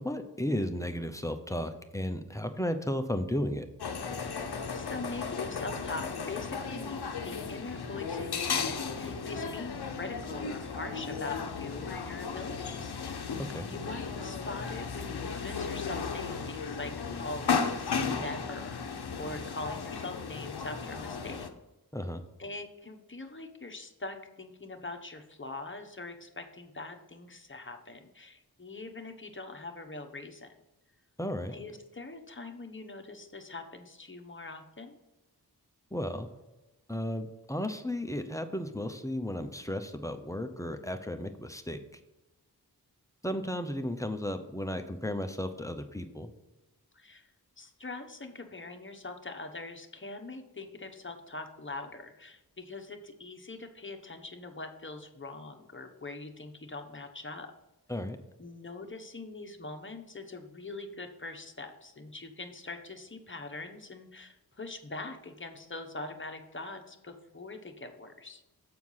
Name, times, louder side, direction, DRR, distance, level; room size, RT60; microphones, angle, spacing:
voice 1, 0.0-3.7 13.5-13.7 21.9-22.2 31.2-31.5 35.9-36.3 36.9-41.8 43.2-46.3 57.9-58.2, left 1 dB, 10° left, 7 dB, 0.8 m, -34 dB
sound 1, 3.8-21.5, left 5 dB, 80° left, 0.8 m, -35 dB
voice 2, 4.2-12.9 13.6-16.9 17.2-21.5 22.4-30.6 31.5-35.0 46.9-47.3 47.6-57.5 58.4-68.4, left 2 dB, 30° left, 5 dB, 1.1 m, -43 dB
7.7 x 4.6 x 5.6 m, 1.0 s
cardioid pair, 40°, 39 cm